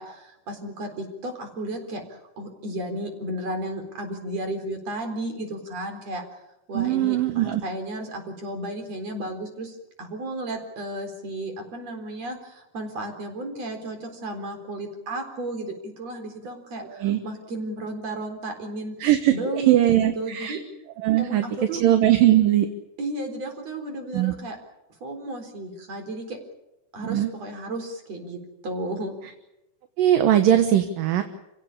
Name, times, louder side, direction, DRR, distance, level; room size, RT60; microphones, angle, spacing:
voice 1, 0.0-6.2 6.7-19.0 19.3-20.6 21.2-21.8 23.0-24.6 25.0-26.4 26.9-29.2, right 1 dB, 45° right, 5 dB, 5.1 m, -33 dB
voice 2, 6.7-7.6 16.9-17.2 19.0-20.6 21.0-21.4 21.8-22.7 24.1-24.3 27.0-27.3 30.0-31.2, right 12 dB, 75° right, 8 dB, 2.8 m, -20 dB
29.0 x 16.5 x 8.6 m, 0.91 s
omnidirectional pair, 4.0 m